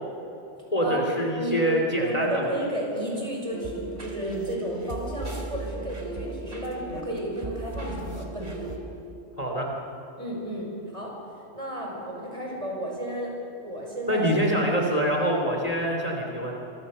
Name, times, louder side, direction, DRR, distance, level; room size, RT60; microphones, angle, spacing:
voice 1, 0.7-2.5 9.4-9.7 14.1-16.6, equal, 30° left, 0 dB, 3.1 m, -25 dB
voice 2, 1.3-8.7 10.2-11.1 11.5-13.3 13.6-14.3, equal, 30° right, -2 dB, 6.0 m, -32 dB
sound 1, 3.5-8.8, right 2 dB, 50° right, 3.1 m, -36 dB
26.5 x 24.5 x 6.7 m, 3.0 s
omnidirectional pair, 1.2 m